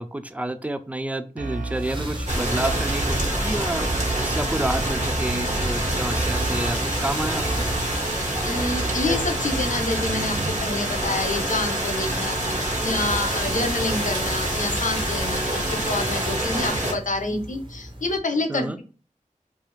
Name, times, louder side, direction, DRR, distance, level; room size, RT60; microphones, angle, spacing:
voice 1, 0.0-3.8 4.2-7.4 18.5-18.8, right 1 dB, 10° right, 9 dB, 0.4 m, -29 dB
sound 1, 1.4-18.2, right 1 dB, 35° right, 0.7 m, -37 dB
sound 2, 1.4-2.2 2.6-3.4 3.8-7.0 7.4-8.2 8.6-10.8, right 3 dB, 85° right, 0.5 m, -33 dB
sound 3, 2.3-16.9, right 1 dB, 60° right, 1.1 m, -26 dB
voice 2, 8.4-18.8, left 2 dB, 70° left, 6 dB, 0.6 m, -28 dB
2.4 x 2.3 x 3.1 m, 0.37 s
wide cardioid pair, 45°, 14 cm